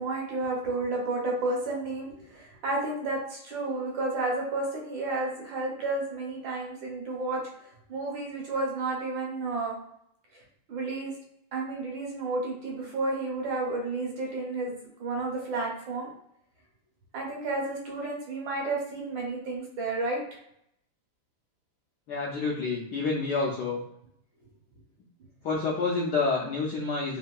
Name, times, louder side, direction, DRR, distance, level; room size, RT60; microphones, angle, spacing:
voice 1, 0.0-7.4 7.9-9.7 10.7-11.1 11.5-16.1 17.1-20.2, right 2 dB, 70° right, -1 dB, 1.4 m, -31 dB
voice 2, 22.1-23.8 25.4-27.2, left 4 dB, 75° left, -3 dB, 0.9 m, -28 dB
3.4 x 2.6 x 2.3 m, 0.72 s
omnidirectional pair, 2.4 m